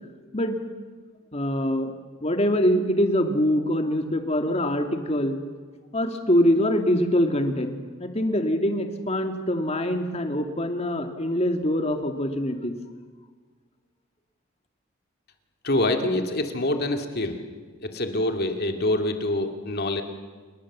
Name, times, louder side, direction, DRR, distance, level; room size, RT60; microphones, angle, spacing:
voice 1, 1.3-1.9 2.2-5.4 5.9-12.8, equal, 30° left, 6 dB, 2.3 m, -24 dB
voice 2, 15.6-17.4 17.8-20.0, left 1 dB, 50° left, 5 dB, 2.4 m, -25 dB
28.5 x 21.0 x 7.4 m, 1.4 s
head